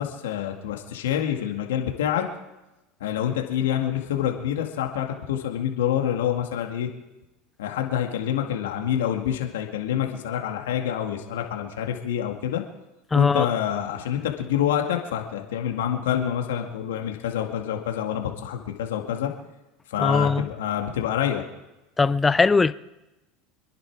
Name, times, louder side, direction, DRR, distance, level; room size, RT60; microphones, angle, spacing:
voice 1, 0.0-2.3 3.0-6.9 7.6-12.6 13.1-19.3 19.9-21.5, left 10 dB, 90° left, 2.0 m, -27 dB
voice 2, 13.1-13.5 20.0-20.5 22.0-22.7, left 4 dB, 15° left, 0.5 m, -20 dB
27.0 x 10.5 x 4.7 m
supercardioid pair, 110°, 0 cm